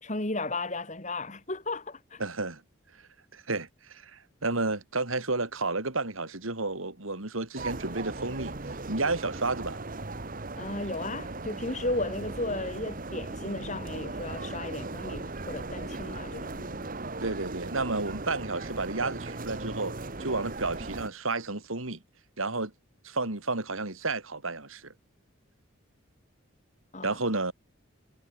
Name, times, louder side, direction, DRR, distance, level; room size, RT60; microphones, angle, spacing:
voice 1, 0.0-2.2 10.6-16.9 26.9-27.2, left 2 dB, 35° left, 2.8 m, -34 dB
voice 2, 2.2-2.6 3.3-9.8 17.2-19.9 20.2-22.0 22.4-22.7 23.0-24.9 27.0-27.5, right 3 dB, 80° right, 3.5 m, -31 dB
sound 1, 7.6-21.1, right 2 dB, 40° right, 1.3 m, -38 dB
head